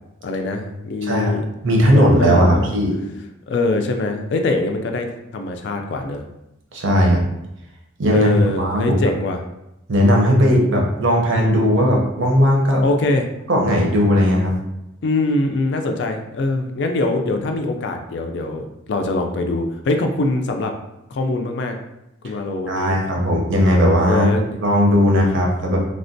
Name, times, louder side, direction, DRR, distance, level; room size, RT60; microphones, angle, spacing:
voice 1, 0.2-1.4 1.9-2.7 3.5-6.2 8.1-9.4 12.8-13.2 15.0-20.7 21.1-21.8 22.2-23.0 24.1-24.6, left 2 dB, 60° left, 4 dB, 0.3 m, -23 dB
voice 2, 1.6-3.0 6.7-7.2 8.0-8.3 8.6-9.0 9.9-12.8 13.5-14.5 22.7-24.3 24.6-25.8, equal, 70° right, -1 dB, 0.6 m, -17 dB
3.3 x 2.1 x 2.6 m, 0.89 s
head